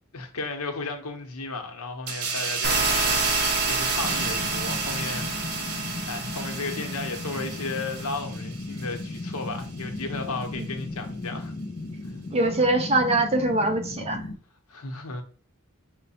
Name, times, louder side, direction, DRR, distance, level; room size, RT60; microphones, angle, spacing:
voice 1, 0.1-5.7 6.1-11.5 12.0-12.1 14.7-15.2, left 3 dB, 90° left, 0.8 m, -34 dB
sound 1, 2.1-9.2 9.6-9.8, right 5 dB, 90° right, 0.9 m, -32 dB
sound 2, 2.6-8.1, right 2 dB, 45° right, 1.0 m, -30 dB
sound 3, 4.0-14.4, left 2 dB, 40° left, 0.4 m, -36 dB
voice 2, 12.3-14.2, right 2 dB, 30° right, 0.5 m, -23 dB
5.1 x 2.1 x 4.1 m
head